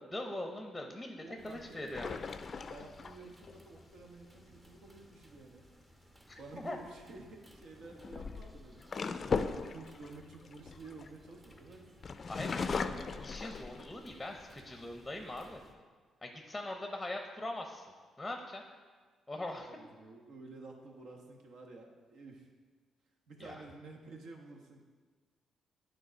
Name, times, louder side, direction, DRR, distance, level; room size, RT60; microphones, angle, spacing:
voice 1, 0.0-2.1 6.3-6.8 12.3-15.6 16.2-17.8 18.2-18.6 19.3-19.7 23.4-23.6, left 1 dB, 10° left, 3 dB, 0.7 m, -41 dB
voice 2, 1.2-2.3 2.6-5.6 6.4-8.9 9.5-11.9 12.8-13.2 19.6-22.5 23.3-24.8, right 3 dB, 75° right, 1 dB, 1.1 m, -51 dB
sound 1, 1.4-15.8, equal, 25° right, 1.0 m, -60 dB
sound 2, 1.9-3.5 6.5-6.8 7.8-11.5 12.0-14.2 14.7-14.8 15.1-15.7, left 5 dB, 40° left, 0.4 m, -38 dB
9.4 x 3.9 x 5.1 m, 1.5 s
cardioid pair, 90°, 0 cm